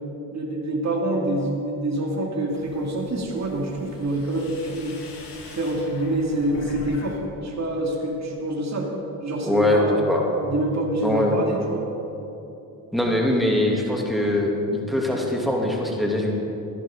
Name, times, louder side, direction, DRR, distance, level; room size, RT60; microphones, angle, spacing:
voice 1, 0.3-4.9 5.5-8.9 9.2-10.0 10.4-11.9, right 1 dB, 35° right, -1 dB, 2.4 m, -26 dB
sound 1, 2.5-7.2 7.5-8.1, left 3 dB, 70° left, 2.0 m, -42 dB
voice 2, 9.4-10.2 11.0-11.4 12.9-16.3, left 1 dB, ahead, -2 dB, 2.6 m, -22 dB
15.5 x 10.5 x 3.8 m, 2.9 s
supercardioid pair, 65°, 44 cm